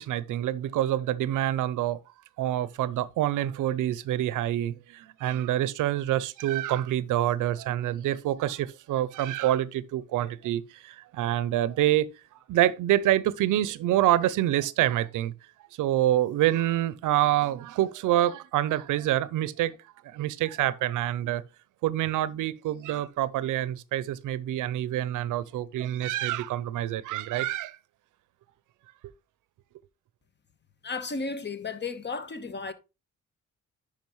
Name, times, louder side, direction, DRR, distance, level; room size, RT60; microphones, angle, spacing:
voice 1, 0.0-2.0 2.4-12.1 12.5-15.3 15.8-19.7 20.0-21.4 21.8-27.8, right 13 dB, 90° right, 0.5 m, -26 dB
voice 2, 30.8-32.7, left 4 dB, 35° left, 1.1 m, -34 dB
10.5 x 5.1 x 3.1 m
cardioid pair, 70°, 30 cm